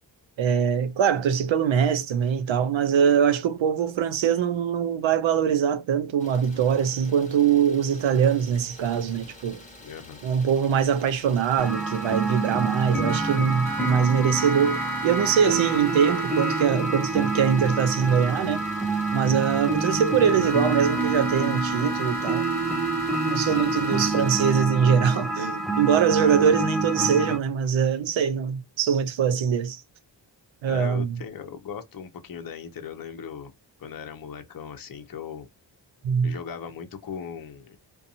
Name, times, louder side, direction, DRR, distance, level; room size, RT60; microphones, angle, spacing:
voice 1, 0.4-9.6 10.2-18.6 19.1-22.5 23.3-29.8 30.6-31.2 36.0-36.4, right 7 dB, 85° right, 0.6 m, -23 dB
Idling, 6.2-24.6, left 2 dB, 15° left, 0.9 m, -47 dB
voice 2, 9.8-10.2 26.2-26.5 30.7-33.5 33.8-35.5 36.2-37.8, left 7 dB, 50° left, 0.6 m, -38 dB
sound 1, 11.6-27.4, right 3 dB, ahead, 0.5 m, -27 dB
sound 2, 13.1-13.9 14.4-16.6 20.4-24.1, right 2 dB, 55° right, 1.3 m, -36 dB
2.5 x 2.3 x 2.6 m
wide cardioid pair, 95°, 45 cm